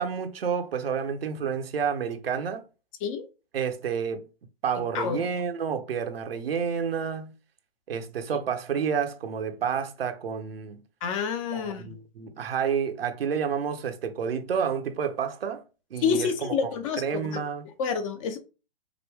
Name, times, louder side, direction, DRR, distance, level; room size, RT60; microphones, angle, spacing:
voice 1, 0.0-2.6 3.5-4.3 4.6-7.3 7.9-10.8 11.5-15.6 15.9-17.7, right 7 dB, 70° right, 1.0 m, -30 dB
voice 2, 11.0-11.8 16.0-17.4 17.8-18.4, left 6 dB, 35° left, 0.7 m, -28 dB
4.9 x 2.2 x 3.4 m
hypercardioid pair, 130°, 30 cm